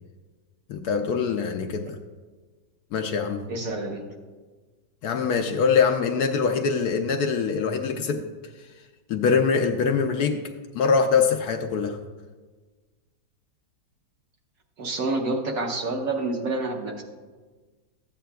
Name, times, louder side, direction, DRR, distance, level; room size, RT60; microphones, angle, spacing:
voice 1, 0.7-2.0 2.9-3.4 5.0-8.2 9.1-10.4 10.7-12.0, left 5 dB, 70° left, 5 dB, 1.0 m, -23 dB
voice 2, 3.5-4.1 14.8-17.0, right 2 dB, 60° right, 1 dB, 1.2 m, -28 dB
13.5 x 8.3 x 2.3 m, 1.4 s
omnidirectional pair, 1.9 m